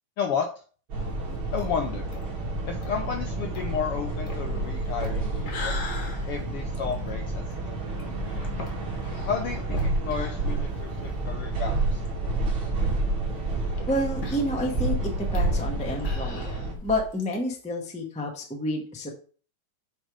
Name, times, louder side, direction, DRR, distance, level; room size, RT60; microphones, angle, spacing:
voice 1, 0.2-0.5 1.5-2.1 2.7-5.8 6.2-8.5 9.3-12.0, left 7 dB, 75° left, 4 dB, 1.3 m, -32 dB
sound 1, 0.9-16.7, right 2 dB, 45° right, 2.9 m, -29 dB
sound 2, 1.1-11.3 11.6-11.7 12.0-12.1 12.9-17.4, left 3 dB, 50° left, 1.9 m, -42 dB
voice 2, 13.9-19.1, left 1 dB, 10° left, 1 dB, 0.3 m, -29 dB
8.7 x 3.6 x 5.0 m, 0.40 s
omnidirectional pair, 3.4 m